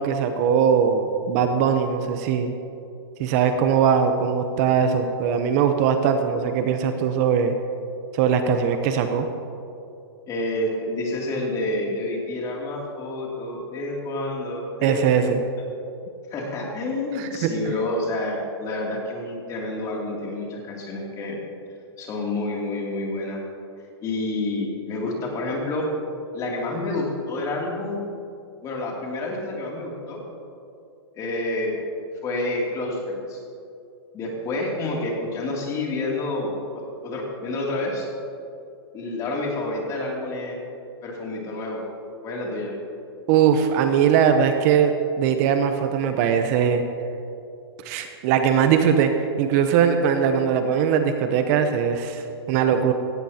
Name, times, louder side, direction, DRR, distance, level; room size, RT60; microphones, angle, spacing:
voice 1, 0.0-2.5 3.2-7.5 8.1-9.3 14.8-15.4 17.1-17.7 43.3-46.8 47.8-52.9, right 7 dB, 40° right, 7 dB, 0.9 m, -21 dB
voice 2, 10.3-15.0 16.3-21.4 22.0-23.4 24.0-25.9 26.3-28.0 28.6-30.2 31.1-31.8 32.2-33.4 34.1-36.5 36.7-38.1 38.9-40.6 41.0-41.8 42.2-42.7, left 2 dB, 25° left, -2 dB, 2.8 m, -28 dB
17.0 x 15.5 x 2.9 m, 2.6 s
hypercardioid pair, 145°, 13 cm